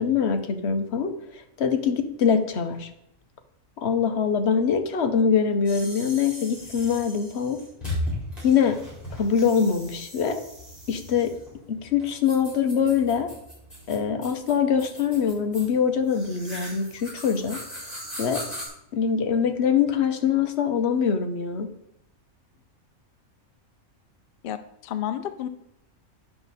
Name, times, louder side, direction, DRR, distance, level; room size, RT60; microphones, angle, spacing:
voice 1, 0.0-2.9 3.8-7.6 8.4-8.8 9.2-10.4 10.9-11.3 11.7-13.3 13.9-18.4 18.9-21.7, left 7 dB, 55° left, 7 dB, 1.0 m, -24 dB
sound 1, 5.6-18.7, left 1 dB, 25° left, 4.2 m, -38 dB
voice 2, 24.4-25.5, left 10 dB, 75° left, 10 dB, 0.5 m, -31 dB
10.0 x 5.9 x 4.0 m, 0.79 s
omnidirectional pair, 1.5 m